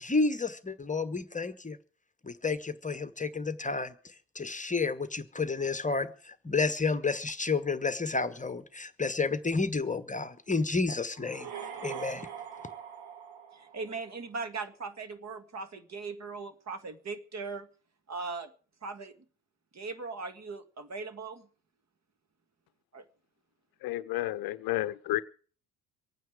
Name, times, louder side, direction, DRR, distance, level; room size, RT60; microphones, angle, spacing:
voice 1, 0.0-1.8 2.2-11.5 11.8-12.3, left 4 dB, 15° left, 1.2 m, -31 dB
sound 1, 11.2-14.2, right 8 dB, 55° right, 2.0 m, -42 dB
voice 2, 13.5-17.7 18.1-18.5 18.8-19.1 19.7-21.5 22.9-23.0, right 4 dB, 35° right, 1.9 m, -39 dB
voice 3, 23.8-25.2, left 15 dB, 50° left, 0.8 m, -31 dB
24.5 x 9.3 x 4.9 m
figure-of-eight pair, 55°, 46 cm